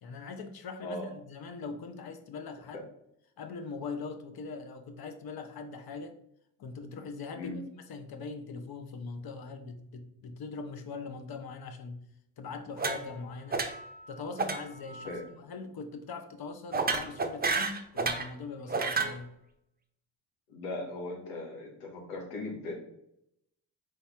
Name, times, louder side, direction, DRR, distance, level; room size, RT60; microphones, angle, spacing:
voice 1, 0.0-2.9 3.4-6.2 6.6-7.5 7.9-12.0 12.4-13.6 14.1-19.3, left 4 dB, 50° left, 0.8 m, -41 dB
sound 1, 12.8-13.2 13.5-13.9 14.4-14.6 14.9-15.2 16.7-18.3 18.7-19.2, right 4 dB, 20° right, 0.6 m, -30 dB
voice 2, 20.5-22.7, left 2 dB, 90° left, 1.2 m, -38 dB
4.2 x 3.4 x 3.5 m
hypercardioid pair, 50°, 46 cm